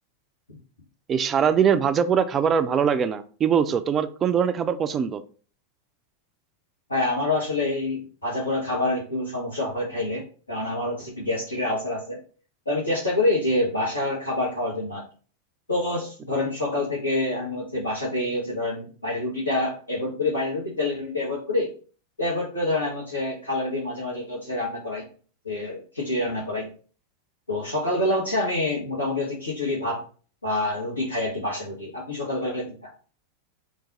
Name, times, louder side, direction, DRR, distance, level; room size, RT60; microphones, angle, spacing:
voice 1, 1.1-5.2, right 7 dB, 25° right, 0.4 m, -22 dB
voice 2, 6.9-12.2 12.6-15.0 15.7-21.7 22.2-25.0 25.4-26.7 27.5-30.0 30.4-32.9, left 2 dB, 80° left, 1.2 m, -27 dB
4.0 x 2.5 x 3.7 m
figure-of-eight pair, 90°, 0 cm